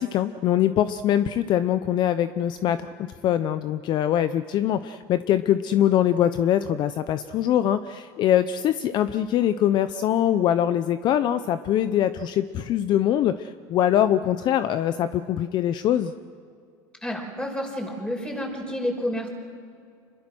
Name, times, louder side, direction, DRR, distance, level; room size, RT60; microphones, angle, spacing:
voice 1, 0.0-16.1, left 11 dB, 50° left, 12 dB, 0.8 m, -23 dB
voice 2, 17.0-19.3, left 1 dB, 10° left, 1 dB, 5.8 m, -29 dB
26.5 x 22.0 x 6.3 m, 2.4 s
supercardioid pair, 105°, 10 cm